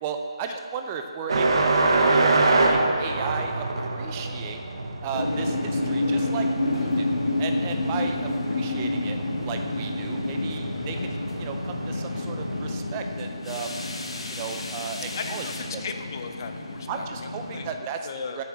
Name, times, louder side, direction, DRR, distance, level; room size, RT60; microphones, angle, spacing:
voice 1, 0.0-4.6 5.0-7.1 7.4-9.2 9.4-13.8 14.3-15.8 16.9-18.4, right 6 dB, 20° right, 5 dB, 0.5 m, -35 dB
sound 1, 1.3-12.8, right 3 dB, 60° right, 1.1 m, -27 dB
sound 2, 5.1-17.7, left 2 dB, 70° left, 1.2 m, -29 dB
voice 2, 15.2-17.0 17.5-17.7 18.0-18.4, left 5 dB, 40° left, 7 dB, 0.6 m, -36 dB
7.2 x 5.9 x 7.4 m, 2.3 s
figure-of-eight pair, 155°, 3 cm